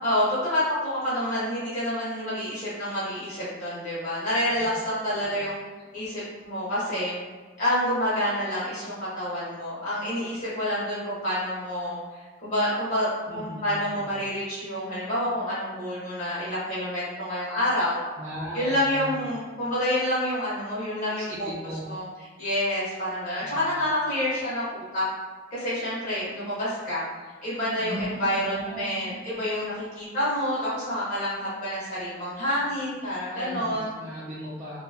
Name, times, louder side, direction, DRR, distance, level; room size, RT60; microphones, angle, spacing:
voice 1, 0.0-5.6 5.9-7.2 7.6-18.0 18.5-21.5 21.9-22.1 22.4-25.0 25.5-27.1 27.4-33.9, left 1 dB, 40° left, -9 dB, 0.8 m, -28 dB
voice 2, 13.3-14.2 18.2-19.3 21.0-21.8 23.4-23.8 27.8-29.2 33.3-34.8, equal, 40° right, -9 dB, 0.4 m, -38 dB
2.6 x 2.2 x 2.6 m, 1.4 s
head